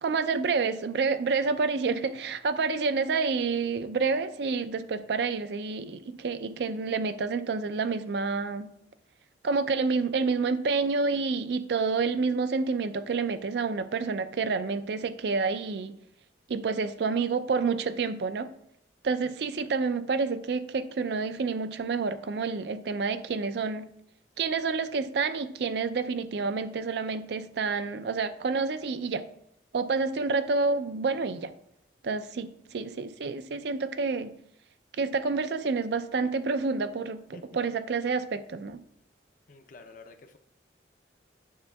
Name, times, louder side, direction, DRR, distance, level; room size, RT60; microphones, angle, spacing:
voice 1, 0.0-8.7 9.4-16.0 16.5-18.5 19.0-23.9 24.4-29.3 29.7-31.5 32.0-34.3 35.0-38.8, right 4 dB, 65° right, 12 dB, 0.4 m, -28 dB
voice 2, 39.5-40.4, left 3 dB, 45° left, 7 dB, 0.5 m, -49 dB
9.5 x 6.8 x 2.3 m, 0.75 s
head